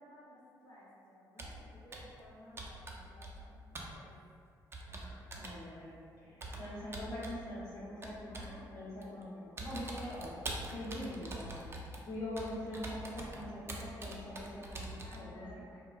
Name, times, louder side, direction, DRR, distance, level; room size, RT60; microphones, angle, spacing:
voice 1, 0.0-4.1 6.2-6.5 15.0-15.8, left 1 dB, 60° left, -6 dB, 0.8 m, -56 dB
Computer keyboard, 1.4-1.6 1.9-2.2 2.6-3.5 3.8-4.0 4.7-5.6 6.4-7.4 8.0-8.6 9.0-9.2 9.6-15.3, right 2 dB, 30° right, 0.4 m, -44 dB
voice 2, 4.8-10.3 10.7-11.6 12.0-14.8 15.2-15.5, left 1 dB, 85° left, -13 dB, 0.9 m, -43 dB
2.3 x 2.2 x 2.4 m, 2.2 s
cardioid pair, 75°, 8 cm